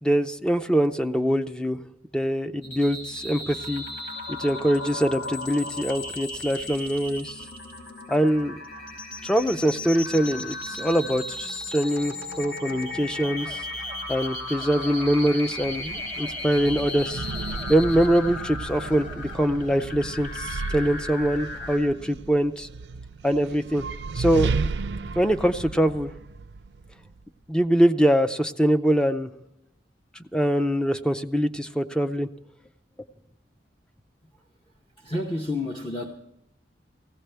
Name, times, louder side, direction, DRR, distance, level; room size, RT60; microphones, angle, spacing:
voice 1, 0.0-1.8 2.1-3.8 4.3-7.4 8.1-8.6 9.2-13.6 14.1-17.2 17.7-22.7 23.2-23.8 24.1-24.5 25.2-26.1 27.5-29.3 30.3-32.3, equal, 5° left, 0.5 m, -23 dB
sound 1, 2.6-21.8, left 2 dB, 70° left, 5.2 m, -36 dB
sound 2, 13.1-19.8, left 1 dB, 50° left, 7.6 m, -47 dB
sound 3, 15.1-27.2, right 4 dB, 70° right, 0.4 m, -34 dB
voice 2, 35.0-36.1, left 2 dB, 30° left, 0.9 m, -30 dB
18.5 x 16.0 x 3.4 m
head